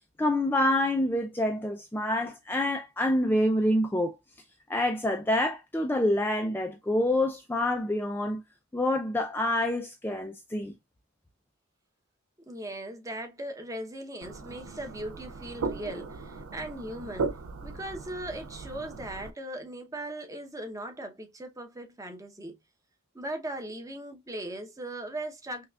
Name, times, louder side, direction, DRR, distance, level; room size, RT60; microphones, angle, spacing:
voice 1, 0.2-4.2 4.7-8.4 8.7-10.7, left 1 dB, 10° left, 0.4 m, -27 dB
voice 2, 12.5-17.4 17.6-22.6 23.1-25.6, right 1 dB, 15° right, 0.8 m, -38 dB
sound 1, 14.2-19.3, right 4 dB, 80° right, 0.4 m, -37 dB
5.6 x 2.3 x 2.3 m
head